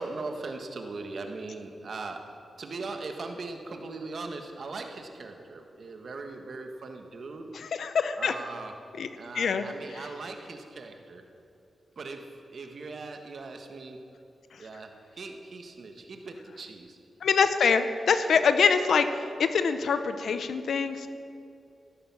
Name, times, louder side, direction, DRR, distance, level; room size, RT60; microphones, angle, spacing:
voice 1, 0.0-7.5 8.2-8.7 9.1-11.2 11.9-14.0 14.6-17.0, right 3 dB, 65° right, 4 dB, 1.6 m, -40 dB
voice 2, 7.5-8.3 9.0-9.1 9.3-9.6 17.2-19.1 19.4-21.1, left 6 dB, 80° left, 10 dB, 0.7 m, -24 dB
14.0 x 12.5 x 6.2 m, 2.6 s
cardioid pair, 70°, 0 cm